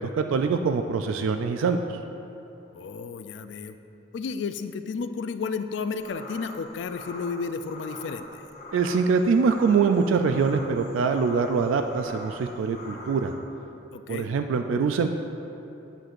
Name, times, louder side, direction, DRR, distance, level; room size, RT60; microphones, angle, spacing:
voice 1, 0.0-1.8 8.7-13.3 14.1-15.1, right 5 dB, 90° right, 6 dB, 0.3 m, -24 dB
voice 2, 2.7-3.8 4.1-8.5 13.9-14.3, left 5 dB, 70° left, 10 dB, 0.3 m, -32 dB
sound 1, 6.0-13.3, left 1 dB, 35° left, 0.8 m, -43 dB
8.9 x 7.6 x 2.5 m, 2.9 s
head